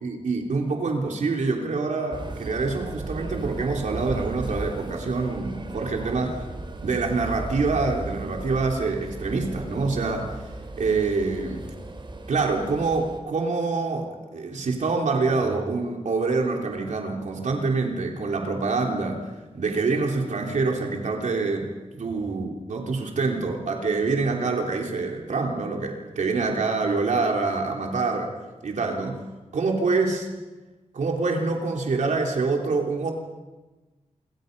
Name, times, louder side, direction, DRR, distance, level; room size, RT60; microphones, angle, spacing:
voice 1, 0.0-6.4 6.8-10.3 10.8-11.7 12.3-19.2 19.5-21.7 21.9-28.3 28.6-29.2 29.5-30.3 30.9-33.1, right 3 dB, 80° right, 1 dB, 3.4 m, -26 dB
sound 1, 2.1-13.2, right 2 dB, 40° right, 3.4 m, -36 dB
28.0 x 24.0 x 5.4 m, 1.2 s
wide cardioid pair, 100°, 12 cm